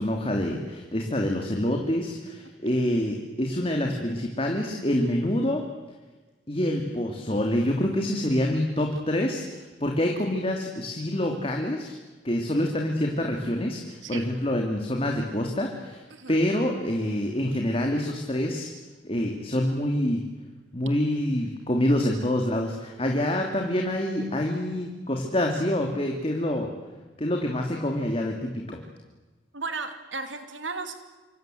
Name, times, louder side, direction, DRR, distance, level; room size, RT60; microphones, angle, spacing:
voice 1, 0.0-5.6 6.5-11.9 12.2-18.7 19.0-20.2 20.7-26.7 27.2-28.8, left 1 dB, 30° left, 2 dB, 2.8 m, -26 dB
voice 2, 29.5-30.9, right 4 dB, 80° right, 8 dB, 2.8 m, -35 dB
27.0 x 26.0 x 7.9 m, 1.2 s
head